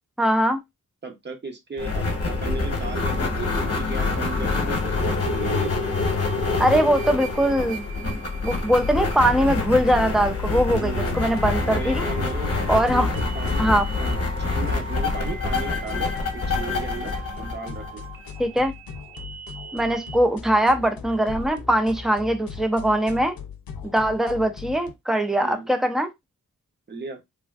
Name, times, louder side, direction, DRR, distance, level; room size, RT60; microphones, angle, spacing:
voice 1, 0.2-0.6 6.6-12.0 12.7-13.1 13.6-13.9 18.4-18.7 19.7-23.3 23.8-26.1, right 1 dB, ahead, 0.3 m, -21 dB
voice 2, 1.0-5.9 10.7-11.2 11.7-13.6 14.0-18.0 25.4-25.7 26.9-27.2, right 4 dB, 30° right, 0.6 m, -35 dB
sound 1, 1.8-18.3, left 3 dB, 45° left, 0.9 m, -26 dB
sound 2, 9.2-24.9, left 5 dB, 85° left, 0.6 m, -39 dB
sound 3, 11.1-20.2, right 6 dB, 75° right, 0.6 m, -42 dB
3.3 x 2.3 x 2.3 m
wide cardioid pair, 170°, 34 cm